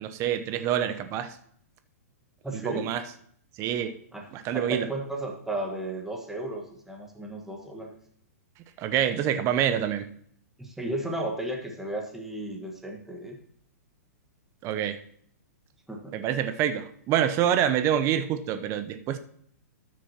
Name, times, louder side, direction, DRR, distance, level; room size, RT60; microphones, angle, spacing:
voice 1, 0.0-1.4 2.5-3.0 3.6-4.0 4.3-4.9 8.8-10.1 14.6-15.0 16.1-19.2, right 10 dB, 35° right, 0.8 m, -26 dB
voice 2, 2.4-2.9 4.1-4.3 4.5-7.9 10.6-13.4 15.9-16.1, right 1 dB, 5° right, 1.5 m, -34 dB
13.5 x 6.3 x 2.9 m
hypercardioid pair, 120°, 9 cm